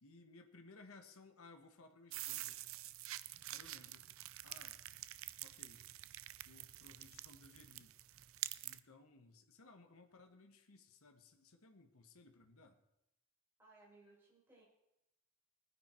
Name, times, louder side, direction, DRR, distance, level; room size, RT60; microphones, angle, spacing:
voice 1, 0.0-2.6 3.5-4.1 4.4-4.9 5.4-5.9 6.4-7.9 8.6-12.8, left 3 dB, 80° left, 5 dB, 1.4 m, -61 dB
sound 1, 2.1-8.8, right 15 dB, 70° right, 0.5 m, -48 dB
voice 2, 13.6-14.6, right 2 dB, 10° right, -6 dB, 5.4 m, -64 dB
19.5 x 9.8 x 4.5 m, 0.88 s
head